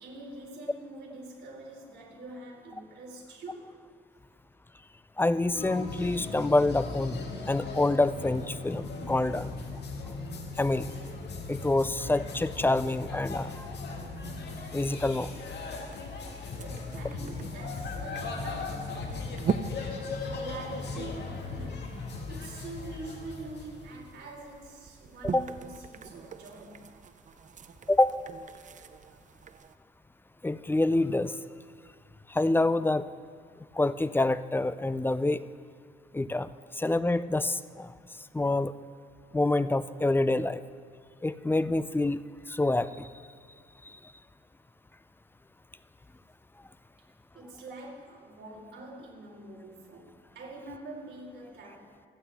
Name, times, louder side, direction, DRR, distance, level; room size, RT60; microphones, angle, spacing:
voice 1, 0.0-3.7 16.6-27.0 47.3-52.0, right 2 dB, 60° right, -3 dB, 4.3 m, -45 dB
voice 2, 5.2-7.2 7.5-9.5 10.6-10.9 11.5-13.6 14.7-15.3 25.3-25.4 27.9-28.1 30.4-31.4 32.3-33.1 33.7-35.4 36.1-36.5 36.8-37.9 38.3-38.7 39.3-40.6 41.2-42.2 42.5-43.1, left 2 dB, 10° left, 14 dB, 0.4 m, -26 dB
sound 1, 5.5-24.1, left 3 dB, 60° left, 1.9 m, -38 dB
sound 2, 15.9-29.7, right 6 dB, 40° right, 0.6 m, -41 dB
26.5 x 9.0 x 3.5 m, 2.2 s
cardioid pair, 90°, 20 cm